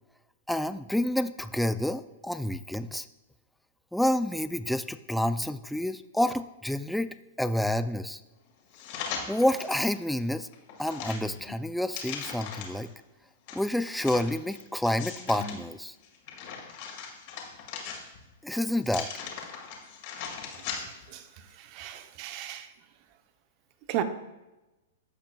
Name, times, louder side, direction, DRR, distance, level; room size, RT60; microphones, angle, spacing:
voice 1, 0.5-3.1 3.9-8.2 9.3-10.5 10.8-12.9 13.5-16.0 18.4-19.1, left 1 dB, ahead, 0.4 m, -29 dB
sound 1, 8.7-9.9 10.3-12.9 13.5-15.6 16.0-18.3 18.8-21.1 21.5-21.6, left 6 dB, 55° left, 2.0 m, -39 dB
voice 2, 21.6-22.7 23.9-24.0, right 11 dB, 45° right, 0.8 m, -34 dB
15.0 x 5.8 x 2.3 m
hypercardioid pair, 125°, 0 cm